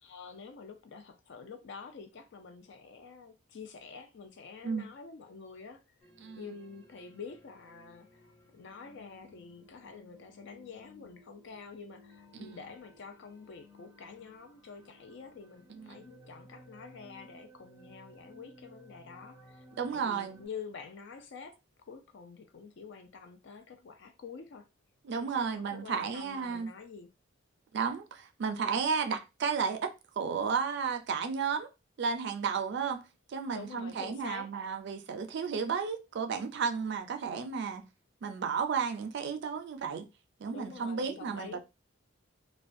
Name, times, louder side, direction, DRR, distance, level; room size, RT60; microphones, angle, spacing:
voice 1, 0.0-6.1 6.4-19.6 19.9-21.6 21.9-24.7 25.2-27.1 33.5-34.5 40.5-41.6, left 5 dB, 60° left, 0.4 m, -47 dB
sound 1, 6.0-20.5, left 1 dB, 10° left, 0.6 m, -58 dB
voice 2, 15.7-16.1 19.7-20.4 25.0-26.7 27.7-31.7 32.0-33.0 33.3-37.9 38.2-40.1 40.4-41.6, right 6 dB, 55° right, 0.4 m, -33 dB
2.3 x 2.1 x 2.5 m
head